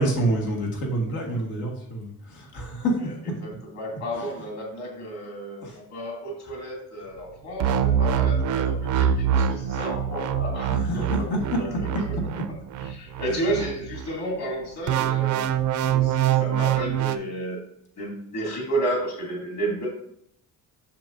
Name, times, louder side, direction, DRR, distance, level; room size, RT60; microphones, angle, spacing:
voice 1, 0.0-3.0 4.1-4.5 5.6-5.8 10.7-12.0 13.2-13.6, right 1 dB, 90° left, 0 dB, 1.9 m, -28 dB
voice 2, 3.4-11.9 12.9-15.5 15.9-17.6 18.0-19.9, right 1 dB, 50° left, -1 dB, 2.5 m, -32 dB
sound 1, 7.6-14.1 14.9-17.2, right 9 dB, 60° right, 0.5 m, -24 dB
7.4 x 6.2 x 2.6 m, 0.71 s
cardioid pair, 170°, 35 cm